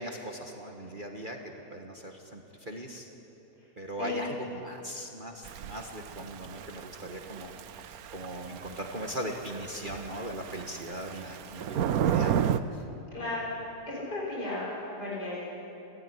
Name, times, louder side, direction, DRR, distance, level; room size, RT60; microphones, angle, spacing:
voice 1, 0.0-1.4 1.7-3.1 3.8-7.5 7.9-12.4 12.7-12.8, right 1 dB, 30° right, 1 dB, 1.6 m, -39 dB
Thunder / Rain, 5.4-12.6, right 9 dB, 65° right, 1.1 m, -33 dB
voice 2, 13.1-13.6 13.9-14.7 15.0-15.4, left 2 dB, 65° left, -6 dB, 7.5 m, -34 dB
28.5 x 14.5 x 9.9 m, 3.0 s
omnidirectional pair, 1.9 m